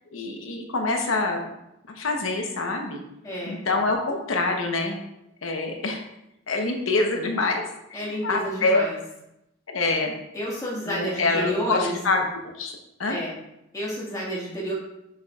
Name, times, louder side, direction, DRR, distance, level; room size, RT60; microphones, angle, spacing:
voice 1, 0.1-1.4 2.0-3.0 3.5-5.0 5.4-6.0 6.5-7.6 7.9-8.8 9.7-10.1 10.8-13.2, left 3 dB, 80° left, 3 dB, 1.0 m, -25 dB
voice 2, 3.2-3.6 7.9-9.0 10.3-12.0 13.1-13.3 13.7-14.7, equal, 15° left, -5 dB, 1.8 m, -30 dB
6.8 x 5.9 x 2.4 m, 0.86 s
head